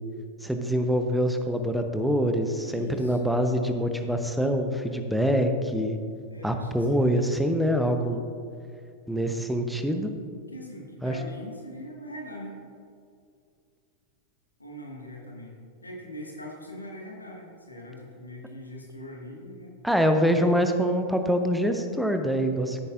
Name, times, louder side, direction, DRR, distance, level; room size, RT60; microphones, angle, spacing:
voice 1, 0.4-6.0 6.4-8.2 9.1-10.1 11.0-11.1 19.8-22.9, equal, ahead, 6 dB, 0.8 m, -25 dB
voice 2, 2.6-3.3 6.3-7.3 10.5-12.6 14.6-19.8, equal, 80° left, -1 dB, 1.5 m, -42 dB
13.0 x 9.8 x 2.5 m, 2.3 s
figure-of-eight pair, 90°, 0 cm